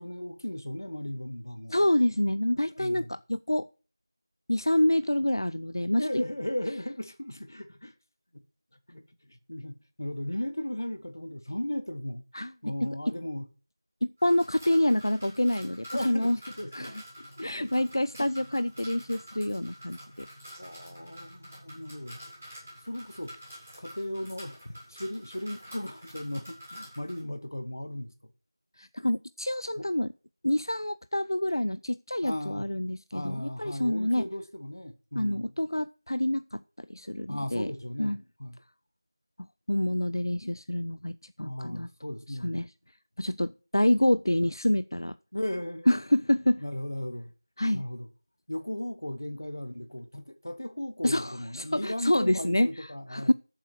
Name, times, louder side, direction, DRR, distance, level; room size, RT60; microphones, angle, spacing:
voice 1, 0.0-1.8 2.8-3.1 6.0-7.9 8.3-8.4 8.9-12.2 12.6-13.5 15.9-16.9 17.2-17.7 18.2-18.3 20.6-22.2 22.8-23.4 23.8-28.3 29.8-29.9 32.2-32.7 33.1-35.6 37.3-38.6 40.4-40.5 41.4-42.6 45.3-45.9 46.6-47.3 47.7-48.1 48.5-53.3, left 1 dB, 45° left, 1.3 m, -36 dB
voice 2, 1.7-3.7 4.5-6.2 12.3-12.9 14.0-16.4 16.7-16.9 17.4-20.3 28.8-30.1 30.4-34.2 35.2-36.6 36.9-37.7 38.0-38.2 39.7-41.9 42.4-42.7 43.2-45.2 45.9-46.6 47.6-47.8 51.0-53.3, left 1 dB, 65° left, 0.5 m, -27 dB
sound 1, 14.2-27.2, equal, 10° right, 6.9 m, -47 dB
13.0 x 7.5 x 4.6 m
figure-of-eight pair, 180°, 2 cm